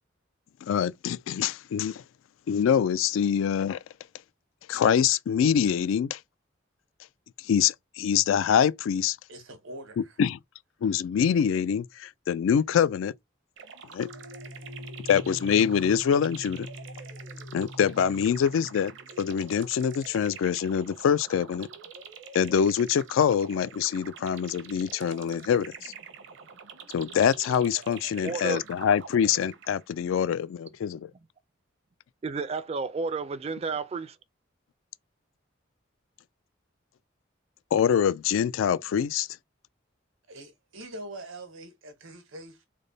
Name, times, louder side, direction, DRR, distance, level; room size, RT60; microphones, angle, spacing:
voice 1, 0.6-2.0 2.5-3.8 4.7-6.2 7.4-9.2 10.2-10.4 10.8-13.1 13.9-14.1 15.1-16.7 17.5-18.9 19.2-21.7 22.3-25.9 26.9-31.1 37.7-39.3, left 8 dB, 80° left, 0.3 m, -25 dB
voice 2, 9.3-10.2 40.3-42.7, right 1 dB, 90° right, 1.1 m, -43 dB
sound 1, 13.6-29.9, right 6 dB, 65° right, 0.7 m, -46 dB
sound 2, 14.0-19.2, left 1 dB, 55° left, 0.9 m, -44 dB
voice 3, 28.2-28.6 32.2-34.2, right 4 dB, 30° right, 0.4 m, -31 dB
3.4 x 2.1 x 3.9 m
head